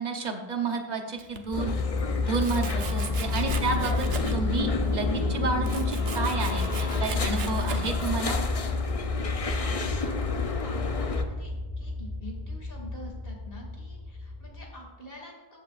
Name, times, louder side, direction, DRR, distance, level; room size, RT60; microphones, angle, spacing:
voice 1, 0.0-1.7 2.2-4.1 4.3-8.4, right 4 dB, 45° right, 3 dB, 1.1 m, -31 dB
Domestic sounds home sounds, 1.2-1.8 2.3-4.6 4.9-8.4, right 6 dB, 80° right, 1.0 m, -40 dB
sound 1, 1.5-11.2, left 4 dB, 40° left, 0.7 m, -32 dB
sound 2, 1.5-14.7, left 3 dB, 5° left, 1.5 m, -31 dB
voice 2, 9.3-15.6, equal, 65° left, -1 dB, 2.6 m, -47 dB
14.5 x 8.3 x 2.5 m, 1.2 s
omnidirectional pair, 1.0 m